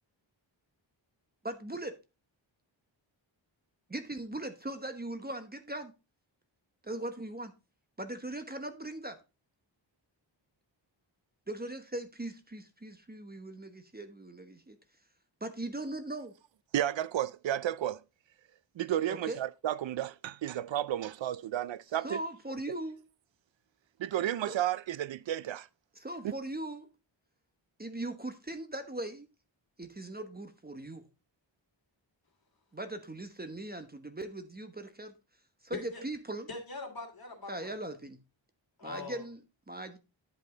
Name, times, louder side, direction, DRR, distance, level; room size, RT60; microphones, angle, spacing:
voice 1, 1.4-2.0 3.9-5.9 6.8-7.5 8.0-9.2 11.5-14.8 15.4-16.4 19.1-19.4 22.0-23.0 24.5-24.6 25.9-26.9 27.8-29.3 29.8-31.1 32.7-35.1 35.6-36.5 37.5-38.2 38.8-39.4 39.7-40.0, right 1 dB, 20° right, 1.1 m, -39 dB
voice 2, 16.7-18.0 18.8-22.2 24.0-25.7, right 11 dB, 70° right, 0.5 m, -32 dB
voice 3, 35.7-36.0 36.5-37.7 38.8-39.2, left 3 dB, 50° left, 2.9 m, -41 dB
10.5 x 5.6 x 3.9 m
wide cardioid pair, 90°, 47 cm